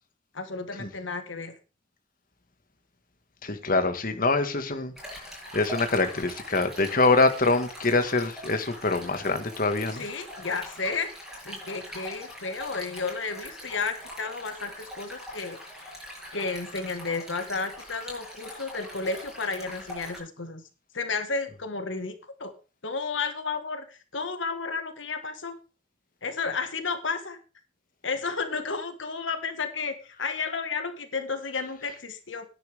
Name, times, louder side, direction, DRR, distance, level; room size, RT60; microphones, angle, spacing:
voice 1, 0.3-1.5 10.0-11.1 11.4-15.9 16.3-20.6 20.9-22.5 22.8-25.5 26.2-27.4 28.0-32.4, left 4 dB, 75° left, 8 dB, 1.7 m, -32 dB
voice 2, 3.4-10.0, left 3 dB, 45° left, 7 dB, 1.7 m, -25 dB
Stream, 5.0-20.2, left 1 dB, ahead, 6.8 m, -42 dB
13.0 x 10.5 x 3.5 m, 0.33 s
head